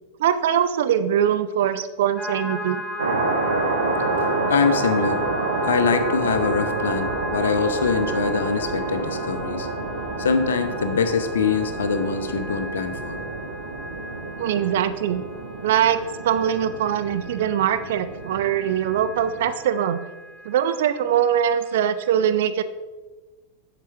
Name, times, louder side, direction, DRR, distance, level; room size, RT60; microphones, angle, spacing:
voice 1, 0.2-2.8 14.4-15.2 15.6-20.0 20.4-22.6, right 9 dB, 55° right, 11 dB, 0.4 m, -22 dB
sound 1, 2.2-20.9 21.3-22.1, equal, 5° left, 0.9 m, -35 dB
sound 2, 3.0-19.5, right 3 dB, 70° right, 1.1 m, -29 dB
voice 2, 4.1-5.2 5.6-9.7 10.2-13.2, left 5 dB, 65° left, 10 dB, 0.6 m, -24 dB
sound 3, 5.9-14.3, right 3 dB, 15° right, 1.8 m, -47 dB
7.6 x 6.7 x 3.4 m, 1.2 s
figure-of-eight pair, 90°, 0 cm